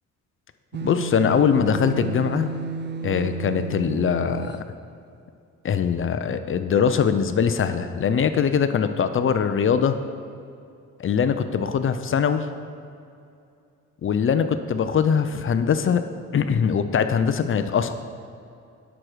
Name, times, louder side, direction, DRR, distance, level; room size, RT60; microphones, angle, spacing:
sound 1, 0.7-4.6, right 5 dB, 35° right, 0.5 m, -32 dB
voice 1, 0.8-2.5 3.0-4.6 5.6-10.0 11.0-12.5 14.0-16.0 16.3-17.9, left 7 dB, 45° left, 10 dB, 0.6 m, -22 dB
10.5 x 6.2 x 5.0 m, 2.5 s
cardioid pair, 90°, 30 cm